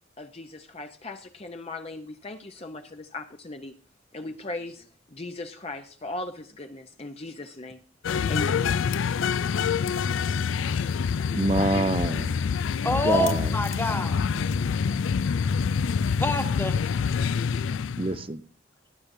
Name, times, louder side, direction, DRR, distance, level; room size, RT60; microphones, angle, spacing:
voice 1, 0.2-3.7 4.1-7.8 8.3-8.6, left 2 dB, 30° left, 0.7 m, -38 dB
sound 1, 8.0-18.2, left 6 dB, 90° left, 0.4 m, -26 dB
voice 2, 11.3-12.4 12.7-13.6 18.0-18.4, right 2 dB, 30° right, 0.6 m, -27 dB
voice 3, 12.8-14.3 16.2-16.9, left 1 dB, 10° left, 1.2 m, -27 dB
18.5 x 10.5 x 2.7 m
head